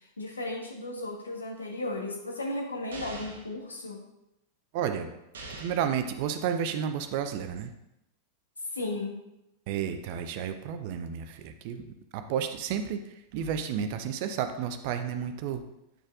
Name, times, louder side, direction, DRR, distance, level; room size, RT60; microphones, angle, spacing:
voice 1, 0.0-4.0 8.7-9.2, left 2 dB, 75° left, 1 dB, 1.2 m, -35 dB
sound 1, 2.9-3.5 5.3-5.9, right 2 dB, 65° right, 1.0 m, -42 dB
voice 2, 4.7-5.1 5.6-7.7 9.7-11.9 12.1-13.0 13.3-15.6, right 8 dB, 45° right, 8 dB, 0.6 m, -31 dB
9.1 x 6.4 x 2.5 m, 0.87 s
figure-of-eight pair, 90°, 0 cm